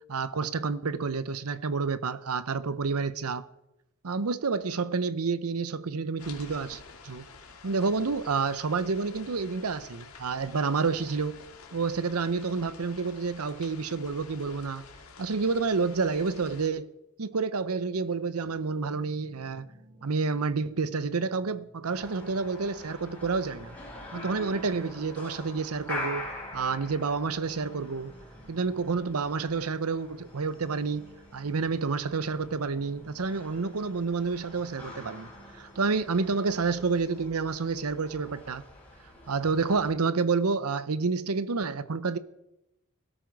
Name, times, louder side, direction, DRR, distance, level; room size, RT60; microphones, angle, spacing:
voice 1, 0.1-3.5 4.0-7.3 7.6-11.4 11.7-14.8 15.2-16.9 17.2-19.7 20.0-23.7 24.1-28.1 28.5-31.1 31.3-35.3 35.6-38.6 39.3-42.2, right 4 dB, 90° right, 0.7 m, -29 dB
sound 1, 6.2-16.7, left 4 dB, 80° left, 2.2 m, -49 dB
sound 2, 18.4-36.0, right 1 dB, 45° right, 2.6 m, -56 dB
sound 3, 21.8-39.9, left 2 dB, 10° left, 6.6 m, -44 dB
17.0 x 13.5 x 4.7 m
head